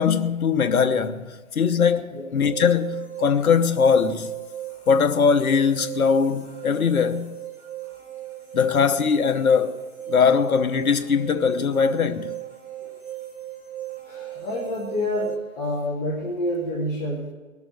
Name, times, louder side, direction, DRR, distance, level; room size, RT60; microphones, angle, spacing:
voice 1, 0.0-4.3 4.9-7.4 8.5-9.8 10.1-12.3, left 6 dB, 80° left, 1.0 m, -21 dB
sound 1, 2.4-15.4, right 13 dB, 80° right, 2.2 m, -37 dB
voice 2, 14.0-17.3, left 1 dB, 5° left, 0.5 m, -28 dB
19.5 x 7.0 x 6.6 m
hypercardioid pair, 145°, 42 cm